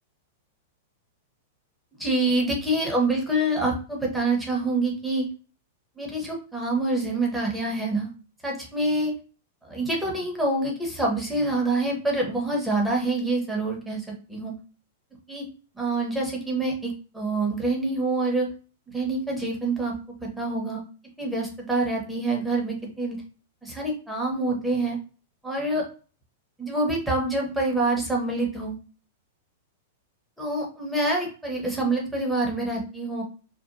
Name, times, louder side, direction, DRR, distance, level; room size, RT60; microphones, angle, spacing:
voice 1, 2.0-5.3 6.0-8.1 8.4-9.1 9.6-14.0 14.3-14.5 15.3-15.5 15.7-18.5 18.9-19.9 20.2-20.8 21.2-23.2 23.6-25.0 25.4-25.8 26.6-28.8 30.4-33.2, right 2 dB, 5° right, -2 dB, 1.0 m, -26 dB
2.9 x 2.1 x 2.5 m, 0.36 s
hypercardioid pair, 100°, 0 cm